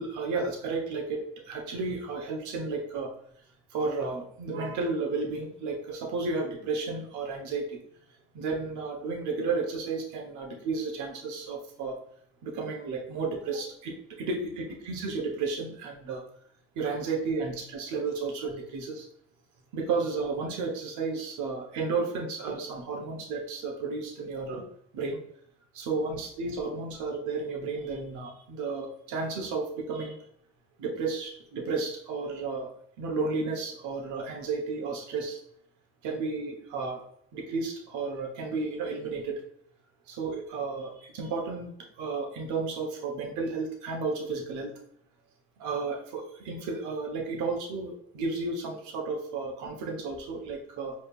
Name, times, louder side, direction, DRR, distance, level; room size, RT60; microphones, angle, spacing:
voice 1, 0.0-3.1 3.7-7.8 8.3-12.0 12.4-16.2 16.7-19.1 19.7-24.6 24.9-25.2 25.7-30.2 30.8-32.7 33.0-35.4 36.0-37.0 37.3-39.4 40.1-44.7 45.6-50.9, right 4 dB, 65° right, 2 dB, 1.1 m, -32 dB
5.1 x 3.3 x 2.4 m, 0.66 s
hypercardioid pair, 60°, 31 cm